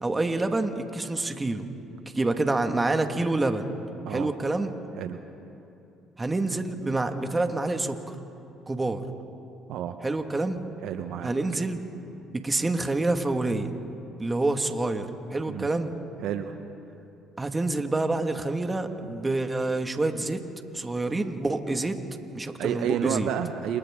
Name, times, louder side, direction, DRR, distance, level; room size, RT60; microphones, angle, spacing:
voice 1, 0.0-1.6 2.1-3.7 4.1-4.7 6.2-8.0 8.7-9.0 10.0-10.6 11.2-11.8 12.3-13.7 14.2-15.9 17.4-20.4 20.7-22.0 22.3-23.3, right 2 dB, 20° right, 6 dB, 1.9 m, -27 dB
voice 2, 10.8-11.3 15.5-15.7 16.2-16.6 22.6-23.8, right 9 dB, 70° right, 8 dB, 1.0 m, -30 dB
30.0 x 28.0 x 3.8 m, 2.8 s
supercardioid pair, 65°, 0 cm